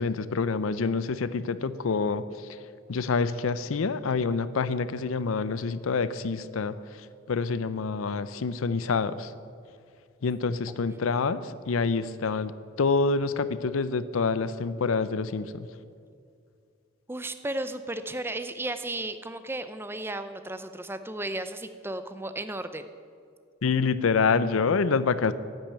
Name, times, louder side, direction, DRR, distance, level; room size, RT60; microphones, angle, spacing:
voice 1, 0.0-2.2 2.9-6.7 7.3-9.3 10.2-12.5 12.8-15.7 23.6-25.3, left 4 dB, 85° left, 14 dB, 0.5 m, -27 dB
voice 2, 17.1-22.9, right 1 dB, 10° right, 10 dB, 0.5 m, -34 dB
10.0 x 9.1 x 9.0 m, 2.3 s
head